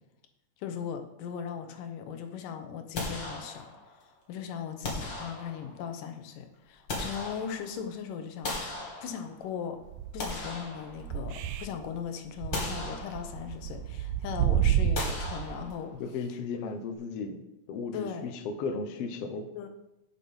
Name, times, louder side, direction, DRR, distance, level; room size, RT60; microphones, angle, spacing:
voice 1, 0.6-8.5 9.0-9.8 10.1-15.9 16.3-16.4 17.9-18.3 19.6-19.7, left 7 dB, 85° left, 6 dB, 2.6 m, -38 dB
sound 1, 2.9-4.0 4.8-5.9 6.5-7.9 8.4-9.5 10.0-11.5 11.8-12.0 12.5-13.6 14.9-16.1, left 2 dB, 40° left, 2.3 m, -38 dB
sound 2, 9.9-10.5 10.9-11.6 11.9-12.0 12.4-15.6, right 10 dB, 75° right, 2.0 m, -29 dB
voice 2, 16.0-19.5, left 4 dB, 65° left, 6 dB, 1.6 m, -35 dB
8.1 x 8.1 x 5.4 m, 0.91 s
omnidirectional pair, 3.7 m